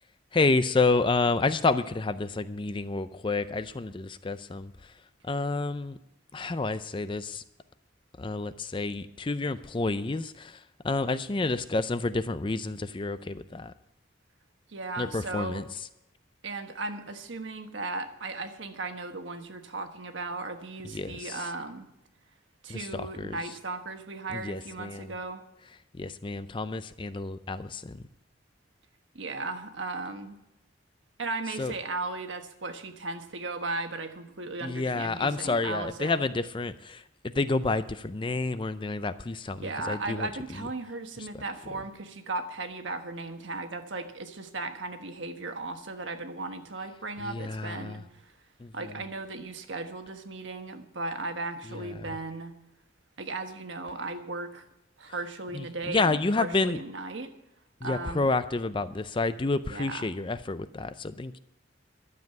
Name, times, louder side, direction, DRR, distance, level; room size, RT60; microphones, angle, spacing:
voice 1, 0.3-4.9 5.2-6.0 6.3-7.4 8.2-13.7 15.0-15.6 20.9-21.4 22.7-23.4 24.3-25.1 25.9-28.0 31.6-31.7 34.6-37.0 37.3-40.3 41.3-41.4 47.2-48.0 48.6-48.7 51.7-51.8 55.5-56.8 57.8-61.4, left 3 dB, 25° left, 13 dB, 0.4 m, -29 dB
voice 2, 14.7-15.6 16.4-21.9 22.6-25.4 29.1-30.4 31.2-36.3 39.5-48.3 48.7-52.5 53.2-54.6 55.0-57.3 57.8-58.3 59.7-60.1, right 3 dB, 70° right, 6 dB, 1.3 m, -36 dB
12.0 x 7.5 x 9.2 m, 0.85 s
head